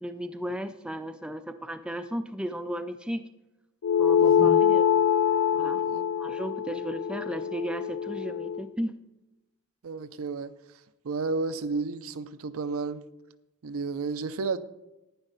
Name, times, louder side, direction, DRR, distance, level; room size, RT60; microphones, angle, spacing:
voice 1, 0.0-3.2 4.0-4.9 5.5-5.8 6.2-8.9, equal, 5° right, 9 dB, 0.3 m, -35 dB
sound 1, 3.8-8.6, left 8 dB, 75° left, 0.4 m, -24 dB
voice 2, 4.2-4.5 5.8-6.1 9.8-10.5 11.0-13.0 13.6-14.6, right 4 dB, 65° right, 13 dB, 0.5 m, -32 dB
11.0 x 9.8 x 3.9 m, 0.97 s
head